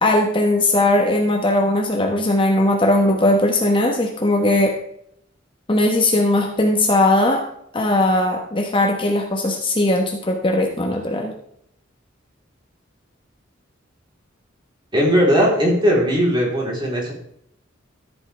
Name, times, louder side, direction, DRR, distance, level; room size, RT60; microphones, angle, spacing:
voice 1, 0.0-4.7 5.7-7.4 7.7-11.3, left 1 dB, 25° left, 2 dB, 1.2 m, -18 dB
voice 2, 14.9-17.1, equal, 25° right, -3 dB, 3.7 m, -18 dB
14.0 x 8.6 x 3.4 m, 0.71 s
head